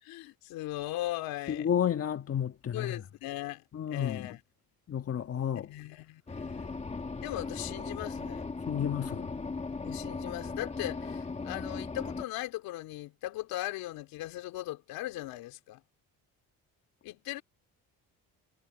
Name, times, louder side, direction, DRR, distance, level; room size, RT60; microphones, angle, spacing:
voice 1, 0.0-1.7 2.7-3.6 3.9-4.4 5.6-6.9 7.2-8.5 9.8-15.8 17.0-17.4, left 16 dB, 80° left, 2.9 m, -38 dB
voice 2, 1.5-3.0 3.7-4.3 4.9-5.7 8.7-9.3, left 9 dB, 40° left, 1.7 m, -31 dB
sound 1, 6.3-12.2, left 4 dB, 20° left, 1.7 m, -38 dB
cardioid pair, 100°, 35 cm